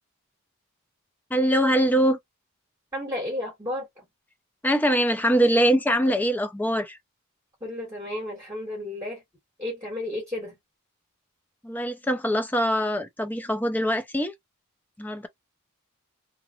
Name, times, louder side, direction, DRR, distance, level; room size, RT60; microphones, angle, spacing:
voice 1, 1.3-2.2 4.6-7.0 11.6-14.3 15.0-15.3, equal, 10° left, 0.4 m, -23 dB
voice 2, 2.9-4.1 7.6-9.2 9.6-10.6, left 1 dB, 15° right, 1.5 m, -32 dB
3.0 x 2.4 x 2.3 m
head